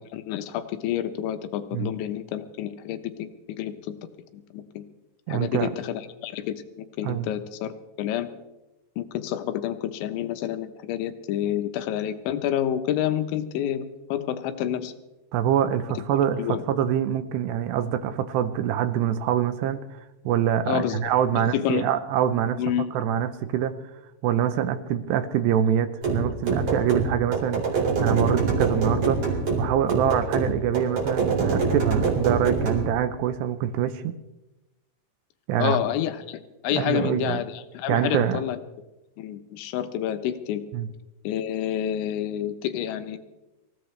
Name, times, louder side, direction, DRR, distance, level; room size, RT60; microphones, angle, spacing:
voice 1, 0.1-4.0 4.3-4.9 5.3-8.3 9.0-14.9 16.4-16.6 20.7-21.0 21.4-21.8 22.6-22.9 35.6-38.6 39.2-40.6 41.2-43.2, left 10 dB, 75° left, 9 dB, 3.3 m, -29 dB
voice 2, 5.3-5.7 7.0-7.3 15.3-20.0 20.3-22.6 22.9-23.8 24.2-34.1 35.5-35.8 36.7-37.4 37.9-38.4 40.7-40.9, right 10 dB, 80° right, 10 dB, 2.5 m, -25 dB
sound 1, 26.0-32.9, right 4 dB, 40° right, 5.2 m, -25 dB
26.0 x 16.5 x 3.3 m, 1.0 s
omnidirectional pair, 5.7 m